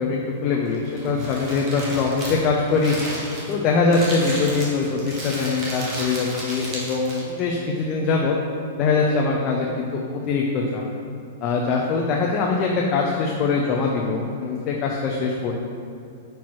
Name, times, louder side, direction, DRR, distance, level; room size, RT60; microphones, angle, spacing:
voice 1, 0.0-3.0 3.5-8.4 8.8-10.8 11.4-15.6, left 4 dB, 25° left, -2 dB, 0.5 m, -23 dB
Crumpling crinkling, 0.6-7.4, right 1 dB, 20° right, 1.1 m, -33 dB
5.5 x 4.5 x 4.6 m, 2.5 s
supercardioid pair, 170°, 0 cm